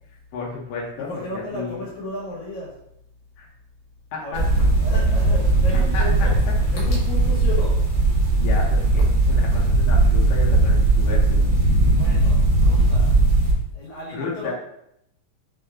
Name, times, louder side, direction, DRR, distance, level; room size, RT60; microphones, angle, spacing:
voice 1, 0.3-1.9 3.4-3.5 4.1-4.2 4.9-5.1 5.9-6.3 8.4-11.5 14.1-14.5, left 4 dB, 65° left, -3 dB, 1.8 m, -33 dB
voice 2, 1.0-2.8 4.2-4.5 4.8-6.3 6.7-7.8 11.8-13.2 13.7-14.5, left 1 dB, 85° left, -4 dB, 2.8 m, -34 dB
sound 1, 4.3-13.5, right 2 dB, 50° right, 1.4 m, -18 dB
6.4 x 2.2 x 3.5 m, 0.77 s
omnidirectional pair, 3.3 m